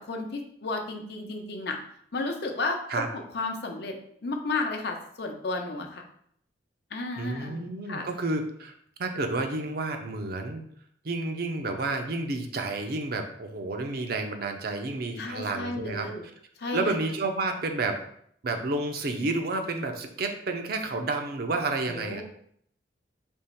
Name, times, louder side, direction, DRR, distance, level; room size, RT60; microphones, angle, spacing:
voice 1, 0.1-1.8 2.1-2.8 3.1-4.0 4.2-6.0 6.9-8.0 15.2-16.2 16.6-17.0 21.9-22.2, left 3 dB, 65° left, 3 dB, 0.7 m, -33 dB
voice 2, 7.2-8.7 9.0-10.6 11.0-16.1 16.7-18.0 18.4-22.2, right 2 dB, 60° right, 5 dB, 0.6 m, -30 dB
3.5 x 3.0 x 4.3 m, 0.66 s
head